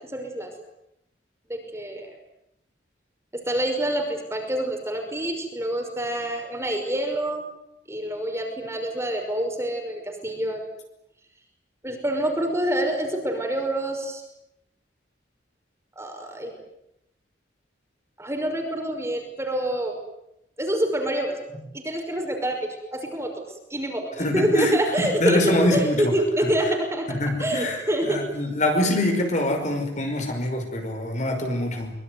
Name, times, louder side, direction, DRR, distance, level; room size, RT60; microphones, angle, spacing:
voice 1, 0.1-0.5 1.5-2.1 3.3-7.4 7.9-10.6 11.8-14.2 16.0-16.5 18.2-20.0 20.6-23.3 23.7-27.1 27.4-28.2, right 1 dB, 15° right, 4 dB, 5.6 m, -26 dB
voice 2, 24.2-24.7 25.2-26.1 27.1-27.8 28.0-31.9, left 1 dB, 40° left, 5 dB, 5.5 m, -24 dB
25.0 x 23.5 x 9.6 m, 0.82 s
head